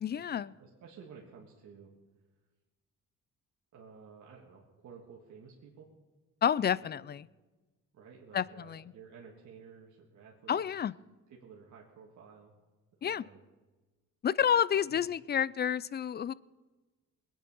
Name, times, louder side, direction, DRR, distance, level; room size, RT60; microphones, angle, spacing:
voice 1, 0.0-0.5 6.4-7.3 8.3-8.8 10.5-10.9 13.0-13.2 14.2-16.3, left 8 dB, 35° left, 21 dB, 0.4 m, -29 dB
voice 2, 0.6-1.9 3.7-5.9 6.7-6.9 7.9-10.8 11.3-12.6 13.0-13.4 14.9-15.0, right 6 dB, 75° right, -2 dB, 1.9 m, -53 dB
20.5 x 9.4 x 5.5 m, 1.2 s
cardioid pair, 90°, 30 cm